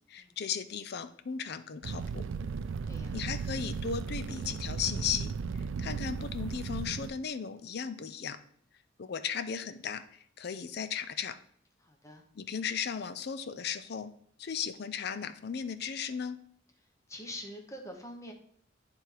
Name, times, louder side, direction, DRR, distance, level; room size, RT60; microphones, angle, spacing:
voice 1, 0.1-2.2 3.1-5.3 5.8-8.4 9.0-10.0 10.4-11.4 12.4-14.1 14.4-16.4, left 7 dB, 55° left, 11 dB, 0.5 m, -36 dB
Fire, 1.8-7.1, right 5 dB, 80° right, 0.4 m, -36 dB
voice 2, 2.8-3.2 11.8-12.2 17.1-18.3, equal, 15° left, 2 dB, 1.0 m, -45 dB
9.2 x 3.5 x 4.5 m, 0.62 s
head